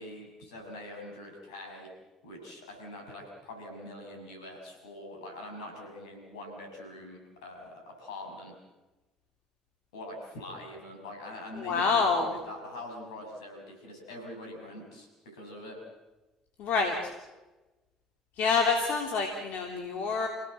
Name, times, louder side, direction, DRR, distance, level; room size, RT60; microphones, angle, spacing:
voice 1, 0.0-1.9 2.2-8.5 9.9-15.8, left 1 dB, 85° left, 2 dB, 6.7 m, -44 dB
voice 2, 11.6-12.3 16.6-17.1 18.4-20.3, left 4 dB, 65° left, 3 dB, 3.0 m, -27 dB
29.0 x 17.0 x 7.8 m, 1.1 s
hypercardioid pair, 55°, 3 cm